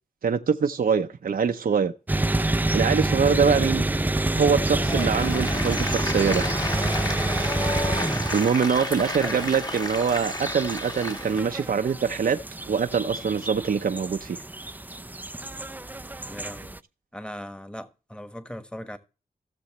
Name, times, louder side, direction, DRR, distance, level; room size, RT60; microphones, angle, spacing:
voice 1, 0.2-1.9 2.7-3.9 4.3-6.4 8.3-12.4 12.7-14.4, right 6 dB, 70° right, 0.6 m, -24 dB
sound 1, 2.1-16.8, right 2 dB, 10° right, 0.4 m, -28 dB
Applause, 4.7-11.5, left 1 dB, 25° left, 1.5 m, -32 dB
voice 2, 7.9-8.5 9.2-9.4 16.2-16.8 17.1-19.0, equal, 5° left, 1.4 m, -38 dB
16.0 x 6.9 x 3.1 m
cardioid pair, 60°, 16 cm